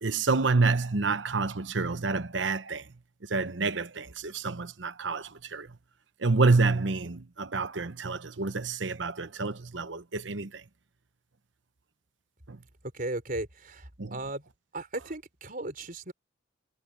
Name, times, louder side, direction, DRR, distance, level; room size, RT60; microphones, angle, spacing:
voice 1, 0.0-2.9 3.3-5.8 6.2-10.6 12.5-12.6 14.0-14.2, right 3 dB, 75° right, 1.0 m, -28 dB
voice 2, 12.9-14.4 14.7-16.1, right 2 dB, 45° right, 4.5 m, -36 dB
head